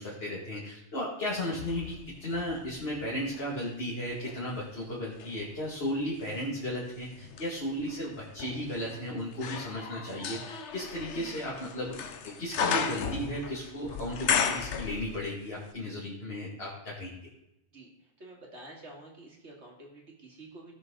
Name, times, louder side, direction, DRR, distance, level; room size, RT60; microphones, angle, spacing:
voice 1, 0.0-17.3, left 1 dB, 60° left, -5 dB, 2.4 m, -35 dB
sound 1, 1.3-3.5 4.1-15.4 15.7-15.8, left 6 dB, 85° left, 1.1 m, -35 dB
voice 2, 18.2-20.7, right 2 dB, 75° right, -1 dB, 2.8 m, -49 dB
17.5 x 6.4 x 3.9 m, 0.88 s
omnidirectional pair, 1.2 m